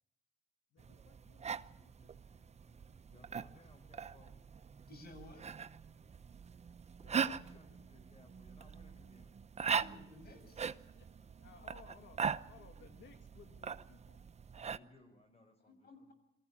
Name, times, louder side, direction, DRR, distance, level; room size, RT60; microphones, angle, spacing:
voice 1, 0.7-3.0 3.5-3.6 7.5-7.6 10.4-11.1 11.4-14.3, left 6 dB, 75° left, 7 dB, 2.5 m, -62 dB
sound 1, 0.8-14.8, right 6 dB, 35° right, 0.8 m, -41 dB
voice 2, 3.1-4.4 7.0-9.3 14.6-16.1, left 1 dB, 30° left, 6 dB, 4.9 m, -63 dB
voice 3, 4.9-5.4 9.7-10.6 15.6-16.1, left 2 dB, 50° left, 8 dB, 6.7 m, -55 dB
23.5 x 15.0 x 8.7 m, 0.83 s
cardioid pair, 90°, 20 cm